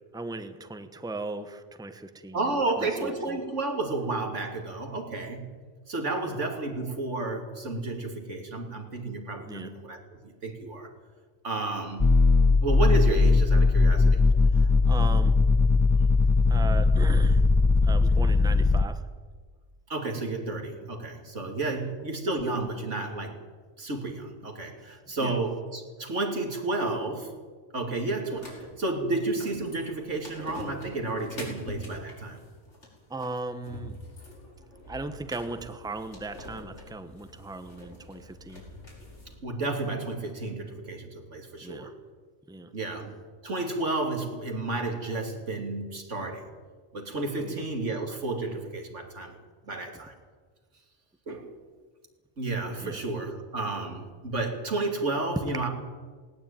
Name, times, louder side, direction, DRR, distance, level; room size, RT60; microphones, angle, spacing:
voice 1, 0.1-3.4 6.2-6.4 9.4-9.7 14.5-15.4 16.5-17.4 17.8-19.0 25.2-25.4 33.1-34.0 34.9-38.6 41.6-41.9 42.5-42.7 47.4-47.6 49.7-49.8 52.8-53.0, right 2 dB, 5° right, 9 dB, 1.1 m, -38 dB
voice 2, 2.3-5.5 5.9-10.9 11.4-12.1 12.6-14.2 19.9-23.4 23.8-27.3 27.7-32.4 39.4-41.9 42.7-43.1 43.4-46.5 46.9-49.3 49.7-50.1 51.3-51.5 52.4-55.7, right 2 dB, 85° right, 3 dB, 3.2 m, -31 dB
sound 1, 12.0-18.9, left 3 dB, 20° left, 0.5 m, -20 dB
sound 2, 28.3-39.3, left 1 dB, 75° left, 6.3 m, -45 dB
18.5 x 18.5 x 9.1 m, 1.5 s
omnidirectional pair, 1.2 m